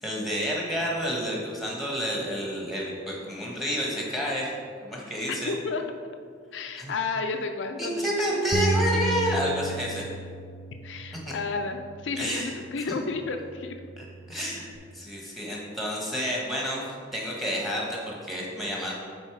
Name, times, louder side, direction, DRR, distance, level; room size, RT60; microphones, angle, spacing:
voice 1, 0.0-4.5 4.8-5.5 6.8-6.9 7.8-10.0 11.3-11.4 12.2-12.5 12.9-13.0 14.0-16.8 17.1-18.9, equal, ahead, -3 dB, 1.3 m, -29 dB
voice 2, 5.3-5.8 6.5-8.4 8.9-9.0 10.8-13.8 15.5-15.6, left 4 dB, 75° left, 5 dB, 0.5 m, -32 dB
Bass guitar, 8.5-13.0 13.6-14.8, right 2 dB, 25° right, 0.4 m, -33 dB
8.1 x 4.0 x 4.7 m, 2.1 s
head